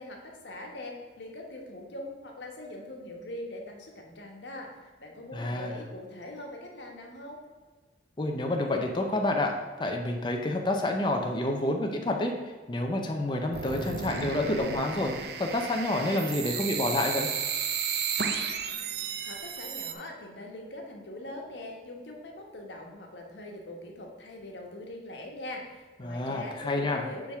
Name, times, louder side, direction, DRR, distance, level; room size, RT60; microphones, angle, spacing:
voice 1, 0.0-4.7 5.0-7.4 19.3-27.4, left 1 dB, 90° left, 1 dB, 1.3 m, -42 dB
voice 2, 5.3-5.7 8.2-9.5 9.8-17.3 26.0-27.0, left 1 dB, 25° left, 2 dB, 0.6 m, -29 dB
sound 1, 13.5-19.9, right 6 dB, 65° right, 0.6 m, -33 dB
6.9 x 3.5 x 5.8 m, 1.4 s
head